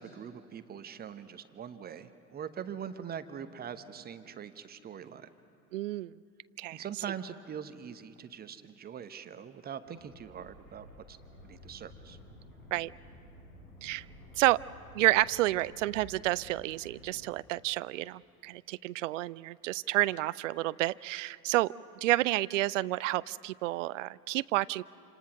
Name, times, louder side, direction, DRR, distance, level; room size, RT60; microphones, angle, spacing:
voice 1, 0.0-5.3 6.7-11.2 11.4-12.2, right 8 dB, 20° right, 11 dB, 0.9 m, -42 dB
voice 2, 5.7-6.1 6.6-6.9 12.7-12.9 13.8-14.1 14.4-14.6 14.9-21.7 22.0-24.8, right 17 dB, 55° right, 20 dB, 0.5 m, -30 dB
sound 1, 9.9-17.2, left 1 dB, 65° left, 6.9 m, -53 dB
27.5 x 27.0 x 6.1 m, 2.5 s
figure-of-eight pair, 80°, 45 cm